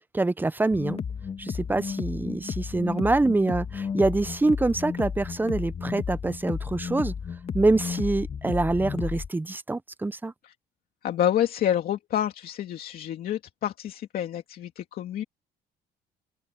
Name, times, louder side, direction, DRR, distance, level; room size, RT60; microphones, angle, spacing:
voice 1, 0.1-1.0 1.4-7.1 7.5-10.3, right 2 dB, 10° right, 0.7 m, -25 dB
sound 1, 0.7-9.3, left 6 dB, 35° left, 1.6 m, -33 dB
voice 2, 11.0-15.2, left 10 dB, 60° left, 2.6 m, -28 dB
open air
cardioid pair, 110°, 17 cm